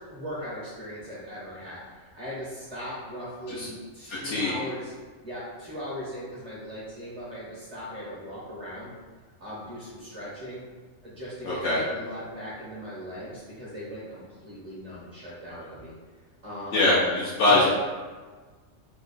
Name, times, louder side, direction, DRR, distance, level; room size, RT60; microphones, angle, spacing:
voice 1, 0.1-4.9 5.2-8.9 9.4-10.6 11.0-15.9 16.4-17.0 17.5-17.7, equal, 35° right, -7 dB, 0.7 m, -38 dB
voice 2, 4.1-4.5 11.4-11.8 16.7-17.7, left 2 dB, 70° left, -8 dB, 0.9 m, -23 dB
3.0 x 2.3 x 3.8 m, 1.4 s
omnidirectional pair, 1.3 m